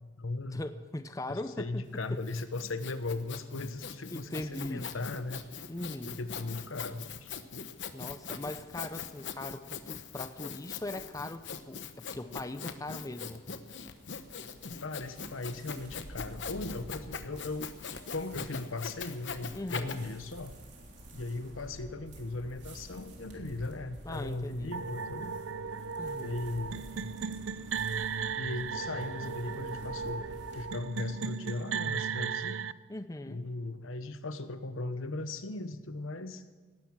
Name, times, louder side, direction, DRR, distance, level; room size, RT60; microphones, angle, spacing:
voice 1, 0.0-0.6 1.3-5.4 6.1-7.3 14.8-17.7 18.1-20.5 21.1-25.3 26.2-27.1 28.4-30.2 30.5-32.7 33.3-36.4, left 2 dB, 90° left, 10 dB, 1.1 m, -38 dB
voice 2, 0.5-1.8 2.1-2.2 4.1-4.9 5.7-6.2 7.9-13.5 19.5-20.0 24.0-24.8 26.0-26.4 32.9-33.4, left 1 dB, 15° left, 10 dB, 0.5 m, -40 dB
Sawing, 1.9-20.0, left 6 dB, 65° left, 1.0 m, -42 dB
Walking slowly through a patch of dried leaves, 13.4-30.7, right 1 dB, 60° right, 3.4 m, -50 dB
sound 1, 24.7-32.7, right 6 dB, 80° right, 0.5 m, -36 dB
18.0 x 11.0 x 7.3 m, 1.3 s
head